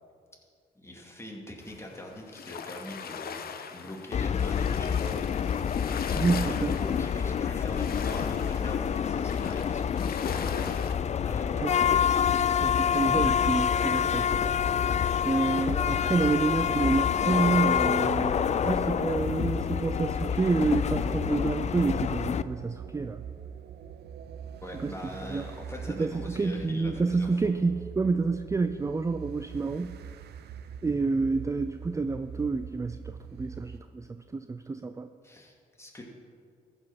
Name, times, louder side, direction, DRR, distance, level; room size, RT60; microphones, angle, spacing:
voice 1, 0.8-3.4 3.7-5.3 6.4-12.1 24.6-27.4 35.2-36.0, left 1 dB, 15° left, -1 dB, 2.3 m, -43 dB
sound 1, 1.6-11.0, left 6 dB, 60° left, 0.8 m, -40 dB
sound 2, 4.1-22.4, left 8 dB, 40° left, 0.4 m, -27 dB
voice 2, 6.1-6.8 11.6-11.7 12.6-14.4 15.2-23.2 24.8-24.9 25.3-25.4 25.9-29.9 30.8-34.1 34.3-35.1, right 3 dB, 20° right, 10 dB, 0.4 m, -28 dB
sound 3, 16.6-33.8, right 8 dB, 75° right, 0.6 m, -43 dB
14.0 x 5.5 x 6.0 m, 2.2 s
supercardioid pair, 65°, 17 cm